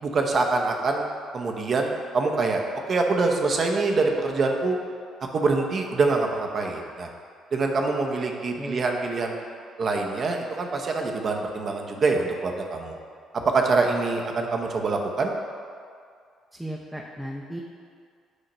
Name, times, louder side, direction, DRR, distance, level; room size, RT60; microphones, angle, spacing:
voice 1, 0.0-2.6 2.9-4.8 5.3-7.1 7.5-9.3 9.8-13.0 13.3-15.3, right 3 dB, 50° right, 2 dB, 0.8 m, -25 dB
voice 2, 16.5-17.6, equal, 5° right, -2 dB, 0.7 m, -35 dB
8.0 x 2.8 x 5.5 m, 2.2 s
hypercardioid pair, 55°, 0 cm